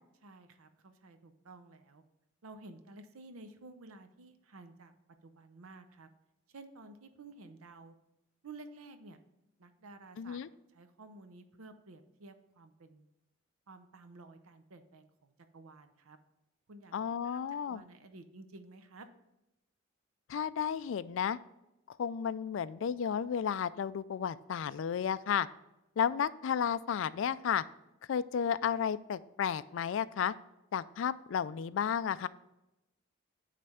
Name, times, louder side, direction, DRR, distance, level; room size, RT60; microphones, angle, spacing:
voice 1, 0.2-2.0 2.4-4.9 5.2-6.1 6.5-7.9 8.4-9.2 9.6-10.4 10.7-13.1 13.7-16.2 16.7-17.0 17.2-19.1, right 3 dB, 85° right, 9 dB, 0.7 m, -53 dB
voice 2, 10.2-10.5 16.9-17.8 20.3-21.4 21.9-25.5 26.0-27.6 28.1-30.3 30.7-32.3, left 8 dB, 60° left, 17 dB, 0.3 m, -33 dB
9.5 x 3.3 x 5.6 m, 0.93 s
head